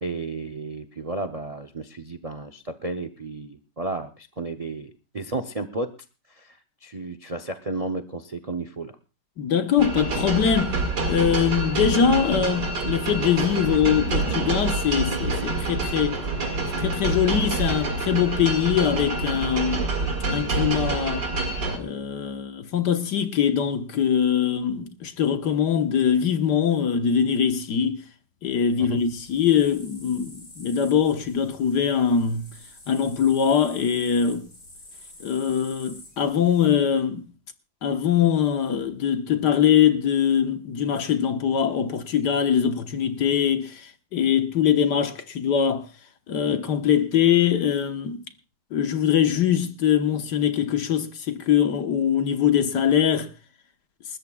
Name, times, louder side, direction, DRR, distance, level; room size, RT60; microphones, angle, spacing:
voice 1, 0.0-5.9 6.3-8.9 28.8-29.0, right 2 dB, 40° right, 0.5 m, -33 dB
voice 2, 9.4-10.8 11.1-16.2 16.8-19.9 20.3-21.3 21.7-28.0 28.4-32.5 32.9-34.5 35.2-37.2 37.8-45.9 46.3-48.2 48.7-53.3, left 8 dB, 75° left, 1.8 m, -22 dB
sound 1, 9.8-21.8, right 3 dB, 85° right, 2.7 m, -27 dB
sound 2, 29.0-36.7, left 1 dB, 55° left, 6.6 m, -48 dB
28.5 x 13.5 x 2.4 m
omnidirectional pair, 1.8 m